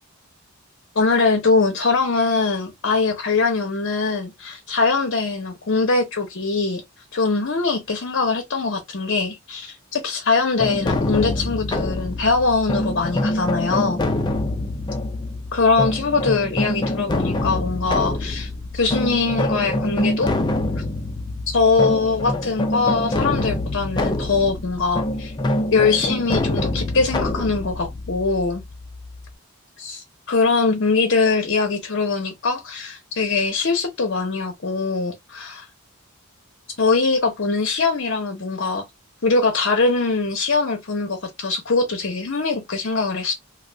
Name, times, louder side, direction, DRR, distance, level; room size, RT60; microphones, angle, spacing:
voice 1, 1.0-6.8 7.1-14.0 15.5-20.3 21.5-25.3 25.7-28.6 29.8-30.0 30.3-35.6 36.8-38.8 39.2-43.3, left 4 dB, 60° left, 0.7 m, -22 dB
sound 1, 10.6-29.3, left 1 dB, 20° left, 0.3 m, -25 dB
2.3 x 2.3 x 3.3 m
head